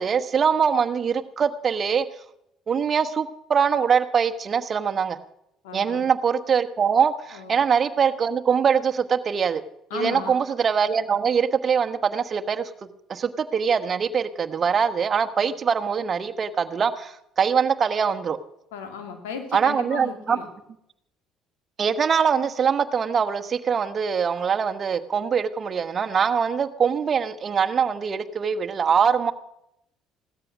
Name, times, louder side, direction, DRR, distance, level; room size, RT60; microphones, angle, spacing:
voice 1, 0.0-2.0 2.7-5.2 5.7-9.6 9.9-12.7 13.1-18.4 19.5-20.4 21.8-29.3, right 6 dB, 45° right, 8 dB, 1.2 m, -23 dB
voice 2, 5.6-6.1 7.3-7.6 9.9-10.4 15.4-15.5 18.7-20.5, left 7 dB, 90° left, 5 dB, 2.6 m, -35 dB
16.5 x 13.0 x 6.2 m, 0.80 s
supercardioid pair, 70°, 0 cm